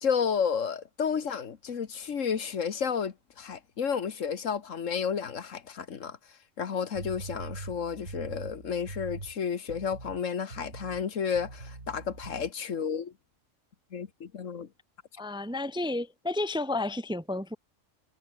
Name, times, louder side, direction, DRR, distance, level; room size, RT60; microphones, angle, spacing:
voice 1, 0.0-6.2 6.6-13.1 13.9-14.7, left 6 dB, 85° left, 1.7 m, -31 dB
sound 1, 6.9-9.4 9.7-10.2 10.5-11.0 11.3-12.5, right 2 dB, 65° right, 4.2 m, -42 dB
voice 2, 15.2-17.6, left 2 dB, 5° right, 0.9 m, -31 dB
omnidirectional pair, 1.3 m